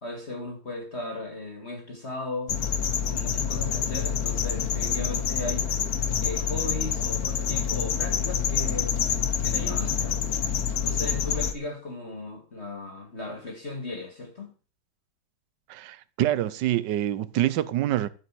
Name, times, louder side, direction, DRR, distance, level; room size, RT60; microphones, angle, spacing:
voice 1, 0.0-2.5 3.1-5.7 6.2-10.2 10.8-14.5, left 2 dB, 35° left, 2.5 m, -36 dB
sound 1, 2.5-11.5, left 7 dB, 55° left, 1.3 m, -27 dB
voice 2, 15.7-18.1, right 13 dB, 70° right, 1.3 m, -26 dB
12.5 x 5.4 x 7.6 m
omnidirectional pair, 2.1 m